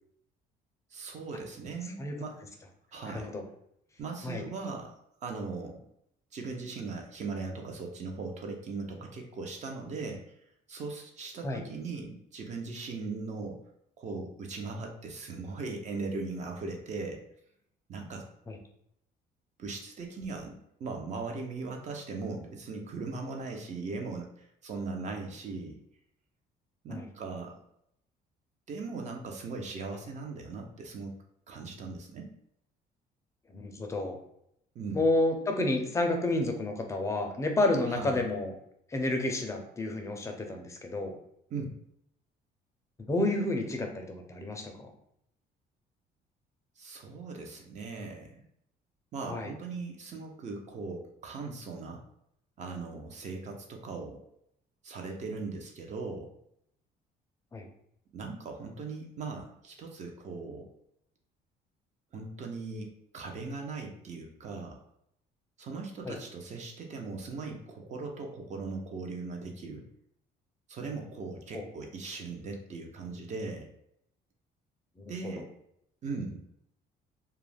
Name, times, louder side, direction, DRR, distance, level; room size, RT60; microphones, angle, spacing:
voice 1, 0.9-2.4 2.9-3.3 4.0-5.0 5.2-5.8 6.3-10.3 10.7-13.6 14.0-17.2 17.9-18.3 19.6-25.8 26.8-27.6 28.7-31.1 31.5-32.3 34.7-35.0 37.9-38.2 41.5-41.8 46.8-48.4 49.1-52.0 52.6-54.2 54.8-56.3 58.1-60.7 62.1-64.8 65.6-69.8 70.7-73.7 75.1-75.5 76.0-76.4, right 4 dB, 45° right, 2 dB, 0.5 m, -39 dB
voice 2, 3.0-3.4 4.2-4.4 11.4-11.6 18.5-18.6 26.9-27.1 33.5-34.2 34.9-38.5 38.9-41.1 43.1-44.9 49.3-49.5 57.5-57.7 66.1-66.2 71.5-71.6 75.0-75.4, left 2 dB, 15° left, 4 dB, 0.4 m, -30 dB
2.3 x 2.0 x 3.2 m, 0.74 s
cardioid pair, 110°, 17 cm